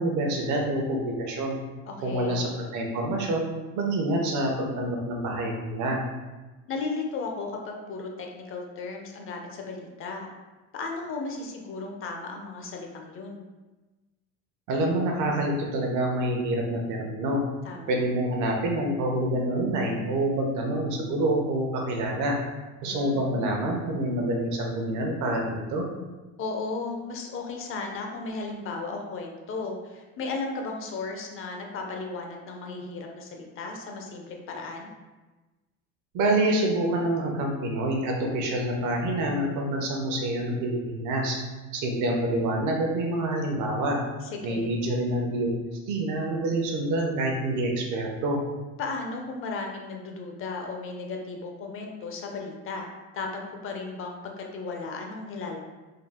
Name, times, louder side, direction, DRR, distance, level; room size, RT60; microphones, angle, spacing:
voice 1, 0.0-1.6 2.0-3.5 3.8-6.0 14.7-17.4 17.9-22.4 22.8-25.8 36.1-41.4 41.7-44.0 44.4-45.5 45.9-48.4, right 1 dB, 65° right, 1 dB, 0.9 m, -27 dB
voice 2, 1.9-2.5 6.7-10.3 10.7-13.5 17.6-18.0 22.8-23.6 26.4-34.9 44.2-44.7 48.8-52.9 53.1-55.6, left 3 dB, 40° left, 2 dB, 0.6 m, -35 dB
3.8 x 2.4 x 3.5 m, 1.2 s
cardioid pair, 135°, 33 cm